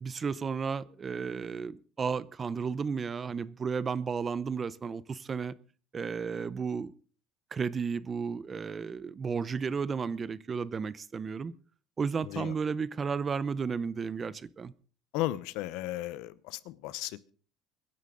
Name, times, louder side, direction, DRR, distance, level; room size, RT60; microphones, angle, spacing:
voice 1, 0.0-5.5 5.9-6.9 7.5-11.5 12.0-14.7, right 5 dB, 25° right, 0.6 m, -33 dB
voice 2, 12.2-12.5 15.1-17.3, left 16 dB, 80° left, 0.9 m, -35 dB
24.5 x 11.0 x 3.8 m
cardioid pair, 135°, 0 cm